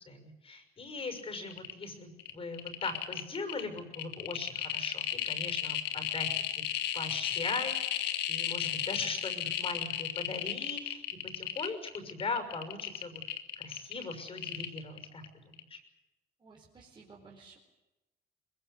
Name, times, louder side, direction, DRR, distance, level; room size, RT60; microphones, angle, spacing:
voice 1, 0.0-13.2 13.6-15.8, left 3 dB, 35° left, 8 dB, 6.2 m, -40 dB
sound 1, 1.1-1.2 1.5-1.9 2.2-15.3 15.5-15.6, left 11 dB, 80° left, 2.0 m, -34 dB
voice 2, 16.4-17.6, right 4 dB, 30° right, -1 dB, 4.4 m, -55 dB
23.0 x 21.5 x 8.3 m, 1.0 s
cardioid pair, 110°, 17 cm